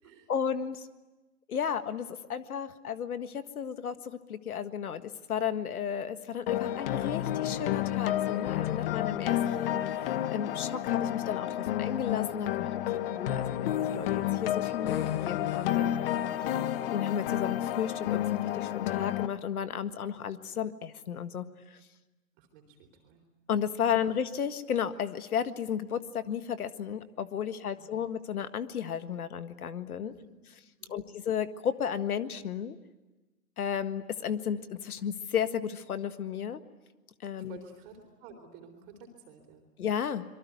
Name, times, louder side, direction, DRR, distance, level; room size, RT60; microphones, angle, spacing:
voice 1, 0.3-0.9 1.5-12.7 13.2-15.9 16.9-21.8 23.5-30.1 30.9-32.8 33.6-36.6 37.2-37.6 39.8-40.2, left 8 dB, 70° left, 11 dB, 1.8 m, -33 dB
sound 1, 6.5-19.3, left 12 dB, 40° left, 1.2 m, -30 dB
voice 2, 22.4-23.2 27.8-28.0 30.0-30.3 30.8-31.1 37.4-39.7, right 5 dB, 35° right, 3 dB, 4.0 m, -52 dB
26.0 x 23.5 x 9.4 m, 1.1 s
hypercardioid pair, 135°, 46 cm